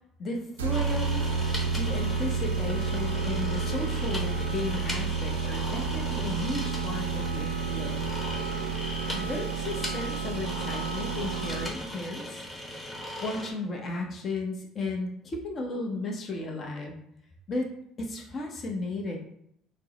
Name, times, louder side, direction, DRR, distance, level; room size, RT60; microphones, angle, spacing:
voice 1, 0.2-1.2 1.6-8.0 9.1-12.4 13.2-16.9 17.5-17.7 18.0-19.2, left 2 dB, 40° left, 1 dB, 0.8 m, -34 dB
sound 1, 0.6-12.0, right 5 dB, 85° right, 0.4 m, -30 dB
sound 2, 0.7-13.5, left 1 dB, 15° left, 1.2 m, -38 dB
4.4 x 2.1 x 4.0 m, 0.72 s
hypercardioid pair, 60°, 0 cm